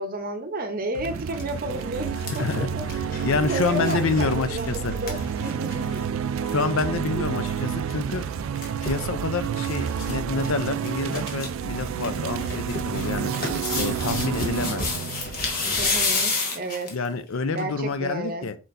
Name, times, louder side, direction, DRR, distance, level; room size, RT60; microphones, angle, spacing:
voice 1, 0.0-6.2 7.1-7.3 14.6-15.2 15.8-16.9 17.5-18.5, right 2 dB, 40° right, 0.7 m, -32 dB
sound 1, 0.9-16.4, right 7 dB, 65° right, 0.3 m, -29 dB
sound 2, 1.1-1.4 1.8-6.0 6.3-6.4 6.6-6.9 8.1-9.1 9.6-10.2 10.4-10.5 10.9-11.5 11.9-17.1 17.6-17.7, left 3 dB, 40° left, 1.2 m, -30 dB
voice 2, 2.4-4.9 6.5-8.3 8.8-13.3 13.8-14.8 16.9-18.6, left 4 dB, 70° left, 0.5 m, -28 dB
4.5 x 4.2 x 2.6 m
head